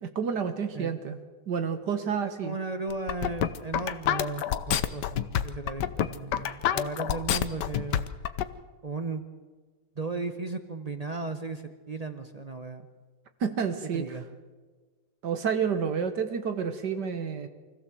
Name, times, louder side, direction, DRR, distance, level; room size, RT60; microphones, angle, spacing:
voice 1, 0.0-1.2 1.5-2.6 13.4-14.2 15.2-17.5, right 6 dB, 55° right, 9 dB, 1.7 m, -29 dB
voice 2, 2.4-8.1 8.8-9.3 10.0-12.9 13.9-14.2, right 3 dB, 40° right, 8 dB, 0.5 m, -35 dB
sound 1, 2.9-8.4, left 10 dB, 65° left, 1.2 m, -27 dB
24.5 x 15.0 x 7.7 m, 1.4 s
omnidirectional pair, 2.3 m